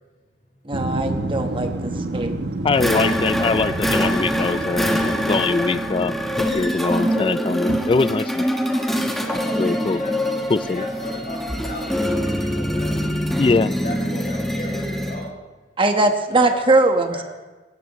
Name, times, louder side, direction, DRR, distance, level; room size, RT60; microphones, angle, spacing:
voice 1, 0.6-1.7 2.1-2.3 15.8-17.2, right 2 dB, 30° right, 5 dB, 1.2 m, -20 dB
sound 1, 0.7-7.2 7.7-7.8, right 2 dB, 70° right, 1.0 m, -30 dB
voice 2, 2.6-8.5 9.6-10.0 10.5-10.9 13.4-13.7, left 4 dB, 30° left, 16 dB, 0.3 m, -22 dB
sound 2, 2.7-15.3, equal, ahead, 1.2 m, -24 dB
voice 3, 9.2-10.1 10.6-13.1 13.8-15.4 16.3-17.2, left 1 dB, 50° left, -2 dB, 5.4 m, -36 dB
18.0 x 16.0 x 3.1 m, 1.2 s
head